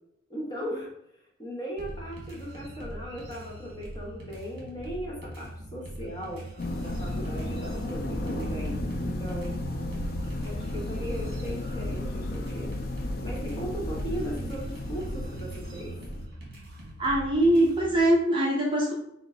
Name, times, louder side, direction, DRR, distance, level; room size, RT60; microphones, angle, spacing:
voice 1, 0.3-0.9 1.4-6.4 6.8-9.5 10.4-12.7 13.2-15.9, equal, 20° left, -3 dB, 1.0 m, -37 dB
sound 1, 1.8-18.1, right 1 dB, 50° right, 1.4 m, -42 dB
sound 2, 6.6-16.3, left 1 dB, 45° left, 0.5 m, -33 dB
voice 2, 17.0-18.9, right 1 dB, 25° right, -3 dB, 0.6 m, -22 dB
5.1 x 2.1 x 3.7 m, 0.77 s
head